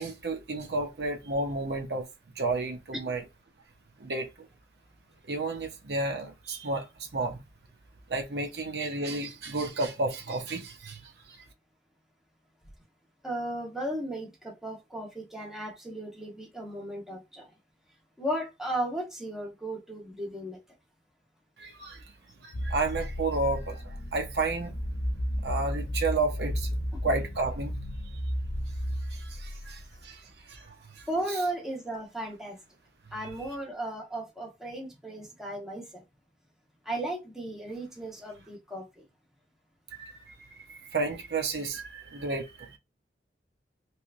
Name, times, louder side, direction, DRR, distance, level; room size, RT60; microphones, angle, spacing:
voice 1, 0.0-2.1 2.4-3.2 4.0-4.5 5.3-7.4 8.1-11.5 21.6-22.0 22.4-24.7 25.4-26.7 27.0-27.8 29.1-31.1 39.9-42.8, right 3 dB, 70° right, 0.7 m, -32 dB
voice 2, 13.2-17.5 18.2-20.6 31.1-32.6 33.1-36.0 36.8-39.0, right 1 dB, 5° right, 1.1 m, -35 dB
sound 1, 22.5-30.0, equal, 45° left, 0.6 m, -33 dB
3.3 x 2.9 x 2.5 m
head